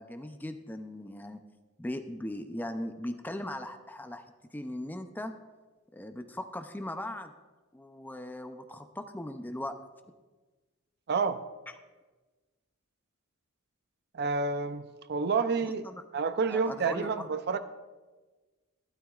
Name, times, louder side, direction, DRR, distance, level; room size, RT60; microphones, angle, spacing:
voice 1, 0.0-1.4 1.8-4.2 4.5-5.3 5.9-7.3 7.7-9.8 15.6-16.0 16.5-17.3, left 1 dB, 10° left, 8 dB, 0.4 m, -39 dB
voice 2, 11.1-11.4 14.1-15.8 16.1-17.6, right 4 dB, 50° right, 11 dB, 0.5 m, -29 dB
12.5 x 12.5 x 2.4 m, 1.3 s
head